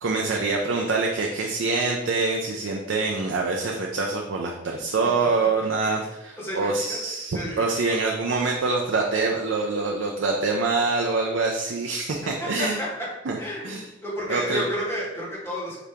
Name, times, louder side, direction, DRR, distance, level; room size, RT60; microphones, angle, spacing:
voice 1, 0.0-12.8 13.3-13.4 13.6-13.9 14.3-14.6, right 3 dB, 75° right, 0 dB, 0.5 m, -25 dB
voice 2, 5.4-6.0 6.4-7.0 7.3-8.0 12.2-12.3 12.6-12.9 13.4-15.8, equal, 15° left, -7 dB, 1.4 m, -32 dB
4.9 x 2.8 x 3.4 m, 0.97 s
head